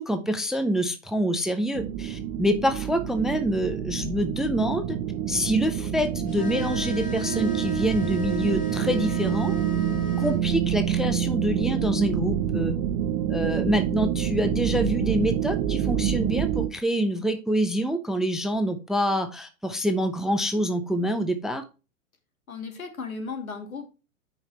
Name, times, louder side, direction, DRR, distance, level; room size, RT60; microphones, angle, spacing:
voice 1, 0.0-5.0 5.3-9.6 10.2-12.8 13.3-21.6, equal, ahead, 9 dB, 0.5 m, -26 dB
sound 1, 1.7-16.7, right 10 dB, 30° right, 1.0 m, -27 dB
sound 2, 6.3-10.4, left 4 dB, 20° left, 2.4 m, -36 dB
voice 2, 22.5-23.9, left 4 dB, 85° left, 6 dB, 2.5 m, -35 dB
9.1 x 5.5 x 3.2 m, 0.30 s
hypercardioid pair, 115°, 41 cm